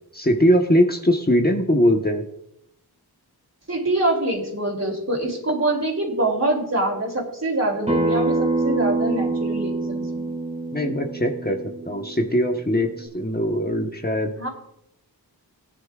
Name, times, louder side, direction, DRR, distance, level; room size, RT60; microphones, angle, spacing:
voice 1, 0.1-2.2 10.7-11.6 11.8-14.3, equal, 25° left, 2 dB, 1.1 m, -21 dB
voice 2, 3.7-10.3 14.4-14.5, right 2 dB, 40° right, 1 dB, 3.1 m, -24 dB
Acoustic guitar, 7.9-13.1, right 2 dB, 15° right, 2.5 m, -26 dB
20.0 x 9.9 x 2.4 m, 0.78 s
wide cardioid pair, 45°, 38 cm